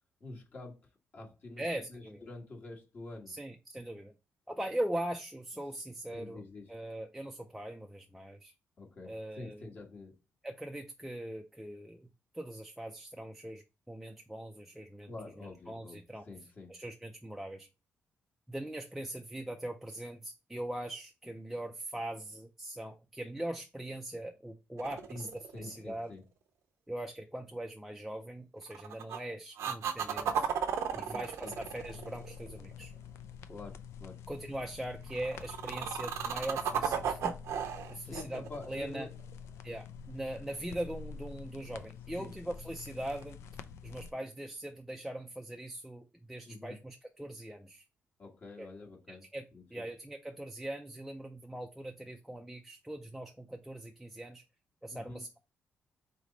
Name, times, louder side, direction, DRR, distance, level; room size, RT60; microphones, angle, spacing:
voice 1, 0.2-1.6 1.9-3.4 6.1-6.7 8.8-10.2 15.1-16.8 24.9-26.2 30.9-31.5 33.5-34.2 37.9-39.1 42.2-42.3 46.4-46.8 48.2-49.8 54.9-55.2, left 2 dB, 40° left, 1.4 m, -47 dB
voice 2, 1.6-2.2 3.3-4.1 4.5-6.4 6.7-8.5 9.0-9.7 10.4-12.1 12.3-15.1 15.4-16.3 16.7-17.7 18.5-25.3 25.6-26.1 26.9-30.5 31.0-32.9 34.3-37.3 37.9-39.1 39.6-43.4 43.8-47.8 48.6-48.7 49.1-54.4 54.8-55.4, right 1 dB, 5° right, 0.4 m, -41 dB
sound 1, 24.8-26.0 28.7-29.2 29.6-32.8 35.1-39.5 43.2-43.3, right 7 dB, 85° right, 0.7 m, -35 dB
sound 2, 31.5-44.1, left 7 dB, 75° left, 0.4 m, -48 dB
4.1 x 3.2 x 3.9 m
cardioid pair, 140°, 5 cm